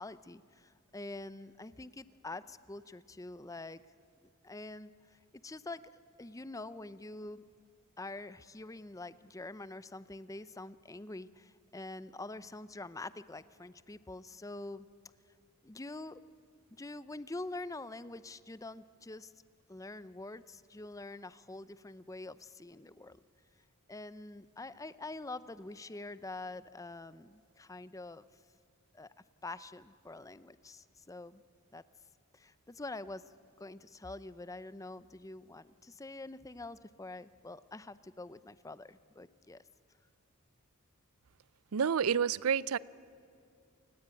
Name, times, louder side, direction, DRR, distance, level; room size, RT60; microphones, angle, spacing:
voice 1, 0.0-3.8 4.2-5.8 6.2-7.4 8.0-14.9 15.6-16.2 16.7-19.3 19.7-23.2 23.9-28.2 28.9-29.1 29.4-31.4 31.7-31.8 32.3-33.2 33.6-39.6, left 2 dB, 15° left, 0.6 m, -45 dB
voice 2, 41.7-42.8, right 7 dB, 80° right, 0.5 m, -29 dB
28.0 x 18.5 x 8.9 m
head